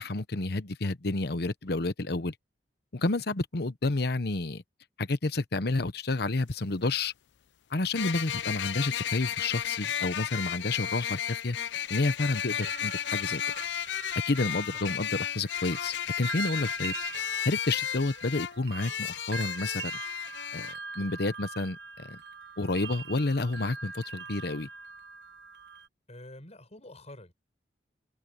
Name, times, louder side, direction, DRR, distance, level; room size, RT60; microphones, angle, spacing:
voice 1, 0.0-2.3 2.9-4.6 5.0-7.1 7.7-11.6 11.9-13.4 14.3-16.9 17.4-19.9 20.5-20.7 20.9-22.2 22.6-24.7, left 2 dB, 65° left, 1.0 m, -30 dB
sound 1, 6.3-6.4 8.0-20.7, left 10 dB, 85° left, 0.5 m, -33 dB
sound 2, 12.2-25.9, right 5 dB, 75° right, 1.1 m, -43 dB
voice 2, 12.4-12.8 14.7-15.0 26.1-27.3, left 1 dB, 40° left, 7.5 m, -48 dB
head